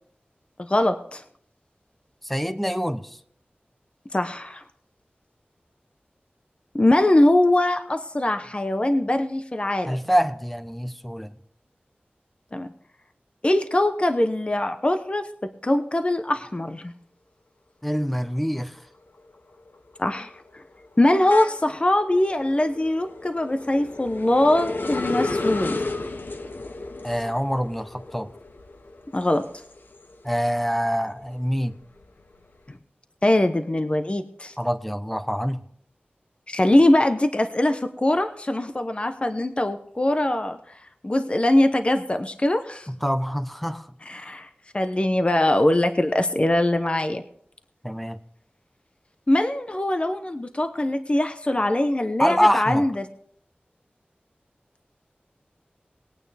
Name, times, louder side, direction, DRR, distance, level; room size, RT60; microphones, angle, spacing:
voice 1, 0.6-1.2 4.1-4.6 6.7-10.0 12.5-12.7 13.4-16.9 20.0-20.6 21.0-25.8 29.1-29.5 33.2-34.5 36.5-40.6 41.0-42.9 44.1-44.5 44.7-47.2 49.3-53.1, left 1 dB, 30° left, 7 dB, 0.8 m, -22 dB
voice 2, 2.2-3.2 9.8-11.3 17.8-18.8 27.0-28.3 30.2-31.8 34.6-35.6 42.9-43.9 47.8-48.2 52.2-52.9, equal, 5° left, 10 dB, 0.9 m, -25 dB
sound 1, 18.4-18.8 19.2-30.4 30.8-32.6, left 2 dB, 60° left, 0.9 m, -34 dB
20.5 x 8.9 x 3.4 m, 0.64 s
wide cardioid pair, 70°, 4 cm